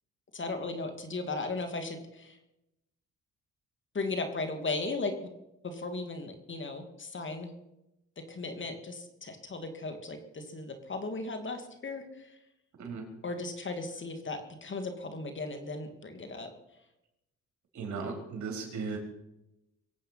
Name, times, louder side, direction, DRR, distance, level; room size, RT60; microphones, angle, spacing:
voice 1, 0.3-2.4 3.9-5.2 5.6-7.5 8.2-12.3 13.2-16.5, left 3 dB, 40° left, 7 dB, 2.8 m, -36 dB
voice 2, 17.7-19.0, right 4 dB, 70° right, 2 dB, 4.6 m, -36 dB
23.0 x 8.6 x 6.0 m, 0.90 s
cardioid pair, 75°, 30 cm